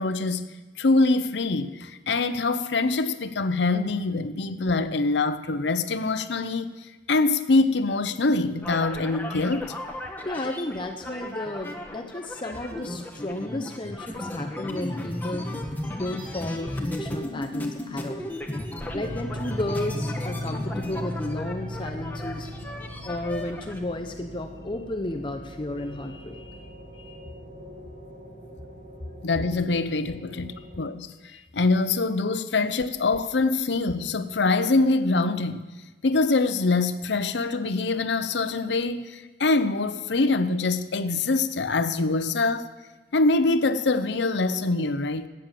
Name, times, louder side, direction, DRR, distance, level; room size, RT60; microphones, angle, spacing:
voice 1, 0.0-6.7 7.1-9.7 29.2-31.2 31.5-35.6 36.0-42.7 43.1-45.3, left 3 dB, 80° left, 0.7 m, -24 dB
sound 1, 8.6-23.8, left 1 dB, 10° left, 1.2 m, -35 dB
voice 2, 10.2-15.4 15.9-18.3 18.9-22.5 23.0-26.6 26.9-27.2 30.6-30.7 31.3-31.4, left 1 dB, 25° left, 0.7 m, -33 dB
sound 2, 18.8-30.8, left 1 dB, 60° right, 5.8 m, -38 dB
13.5 x 9.0 x 7.6 m
head